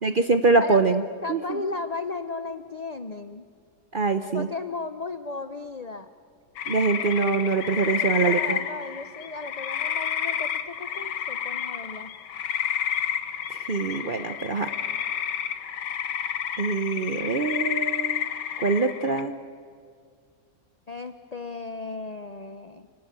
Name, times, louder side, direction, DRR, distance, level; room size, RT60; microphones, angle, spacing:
voice 1, 0.0-1.0 1.3-1.6 3.9-4.5 6.7-8.6 13.5-14.7 16.6-18.3 18.6-19.3, right 4 dB, 45° right, 9 dB, 0.7 m, -24 dB
voice 2, 1.2-3.5 4.3-6.1 8.2-12.1 20.9-22.9, left 3 dB, 50° left, 10 dB, 0.4 m, -35 dB
sound 1, 6.6-19.2, left 9 dB, 90° left, 1.6 m, -30 dB
28.5 x 19.5 x 8.9 m, 2.1 s
omnidirectional pair, 1.8 m